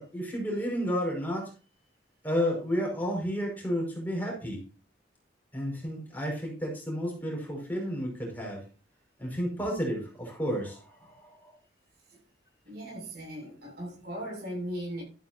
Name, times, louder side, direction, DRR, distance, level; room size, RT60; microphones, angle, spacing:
voice 1, 0.0-1.5 2.2-4.6 5.5-8.6 9.2-11.5, equal, 10° left, 5.7 m, -31 dB
voice 2, 12.7-15.0, equal, 60° right, 7.1 m, -38 dB
13.5 x 11.0 x 2.8 m
head